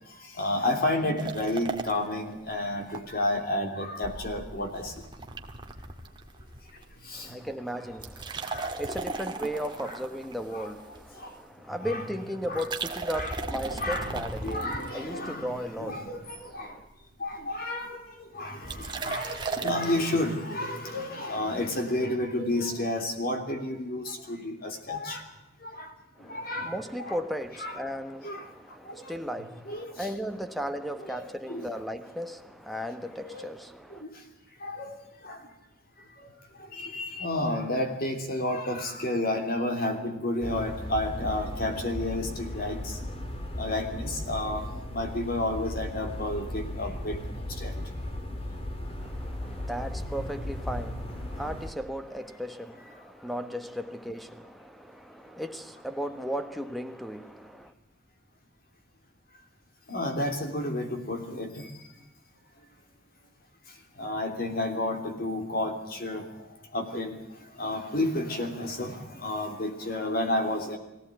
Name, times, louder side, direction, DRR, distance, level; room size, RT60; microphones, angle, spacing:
voice 1, 0.3-4.9 7.0-7.4 8.4-8.7 9.8-9.9 10.5-10.7 11.2-11.3 11.8-12.0 12.5-12.6 13.1-13.3 13.7-16.8 17.2-18.0 18.3-25.2 25.6-25.9 26.3-26.7 27.0-27.1 27.6-27.8 28.2-28.5 28.8-29.2 29.7-30.1 31.1-31.2 31.5-31.7 33.2-33.5 33.9-34.1 34.6-34.9 35.2-35.4 36.7-43.0 43.6-44.6 44.9-47.2 47.6-47.7 59.9-61.8 64.0-66.2 66.7-67.2 67.6-70.8, left 1 dB, 45° left, 3.1 m, -31 dB
sound 1, 1.2-3.0 3.3-3.4 4.0-6.9 7.2-7.5 7.9-11.3 12.4-15.4 15.9-16.4 16.7-16.8 17.0-17.6 18.6-20.0, right 3 dB, 25° right, 1.7 m, -37 dB
voice 2, 7.1-16.9 26.2-34.1 49.0-57.7, equal, ahead, 1.2 m, -36 dB
sound 2, 40.4-51.7, left 1 dB, 30° left, 2.5 m, -36 dB
22.5 x 16.5 x 9.1 m
head